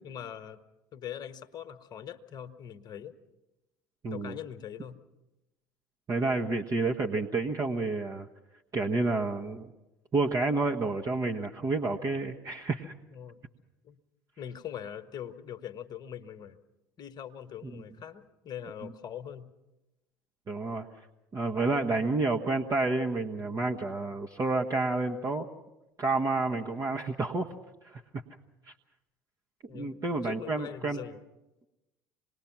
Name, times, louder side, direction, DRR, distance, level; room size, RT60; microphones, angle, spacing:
voice 1, 0.0-0.6 0.9-3.2 4.1-5.0 13.1-13.4 13.8-14.0 14.4-16.6 17.0-19.5 26.5-26.8 29.7-31.2, left 9 dB, 45° left, 10 dB, 1.3 m, -42 dB
voice 2, 4.0-4.4 6.1-8.3 8.7-9.7 10.1-12.9 17.6-17.7 20.5-20.9 21.3-25.4 26.0-27.5 27.8-28.2 29.7-31.0, right 3 dB, 35° right, 1 dB, 1.3 m, -29 dB
26.5 x 20.0 x 6.0 m, 1.0 s
figure-of-eight pair, 65°, 10 cm